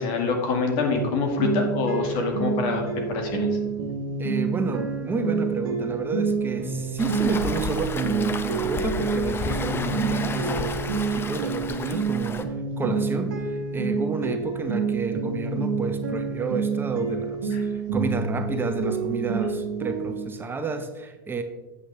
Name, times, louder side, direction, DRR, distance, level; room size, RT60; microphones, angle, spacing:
voice 1, 0.0-3.5 17.5-17.6, left 4 dB, 55° left, 3 dB, 2.0 m, -25 dB
sound 1, 0.9-20.2, right 5 dB, 85° right, 1.4 m, -28 dB
voice 2, 4.2-10.8 11.1-12.5 12.8-21.4, right 4 dB, 20° right, 7 dB, 0.8 m, -30 dB
Waves surf, 7.0-12.4, left 4 dB, 20° left, 0.7 m, -32 dB
8.3 x 7.9 x 3.3 m, 1.2 s
hypercardioid pair, 105°, 11 cm